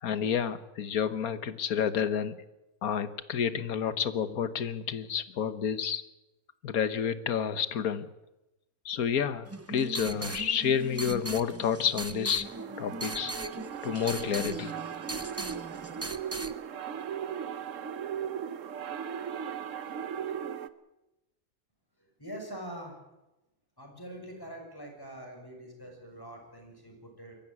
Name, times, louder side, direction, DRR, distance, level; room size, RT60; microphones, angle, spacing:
voice 1, 0.0-2.3 2.8-6.0 6.6-8.1 8.8-12.5 12.8-13.3 13.8-14.7, left 8 dB, 70° left, 13 dB, 1.6 m, -30 dB
sound 1, 9.5-16.5, right 2 dB, 15° right, 0.5 m, -39 dB
sound 2, 12.4-20.7, right 8 dB, 60° right, 1.2 m, -37 dB
voice 2, 22.0-23.0 23.8-27.3, right 1 dB, 15° left, 2 dB, 6.1 m, -44 dB
22.5 x 15.0 x 9.9 m, 0.98 s
omnidirectional pair, 1.6 m